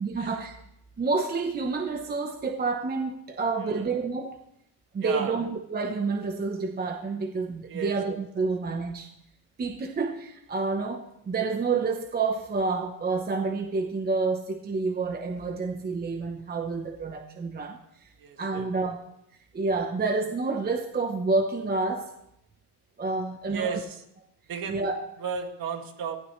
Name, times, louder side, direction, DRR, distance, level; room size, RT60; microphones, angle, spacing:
voice 1, 0.0-0.5 1.0-4.4 4.9-9.1 9.6-18.1 18.4-19.0 19.5-22.1 23.0-23.8 24.7-25.0, right 4 dB, 20° right, 5 dB, 0.9 m, -29 dB
voice 2, 5.0-5.4 7.7-8.0 18.2-18.8 23.5-24.0 24.5-24.9 25.2-26.2, right 6 dB, 45° right, 4 dB, 2.2 m, -34 dB
18.0 x 15.0 x 3.2 m, 0.79 s
cardioid pair, 145°, 48 cm